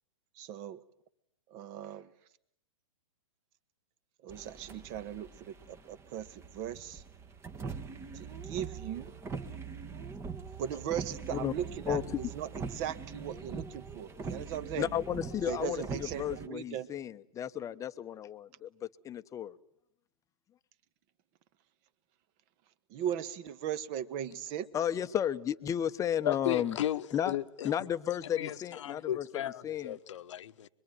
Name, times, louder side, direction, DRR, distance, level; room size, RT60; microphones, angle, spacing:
voice 1, 0.4-0.8 1.5-2.1 4.2-7.0 8.1-9.1 10.6-14.9 15.5-16.9 22.9-24.7, right 10 dB, 35° right, 1.6 m, -38 dB
sound 1, 4.3-16.5, right 5 dB, 15° right, 1.3 m, -43 dB
voice 2, 11.9-12.2 14.8-19.6 24.7-26.8 27.1-27.4 27.6-30.0, left 10 dB, 20° left, 1.1 m, -33 dB
voice 3, 26.2-27.7 28.4-30.7, left 11 dB, 60° left, 1.2 m, -35 dB
25.0 x 23.0 x 9.2 m
hypercardioid pair, 120°, 18 cm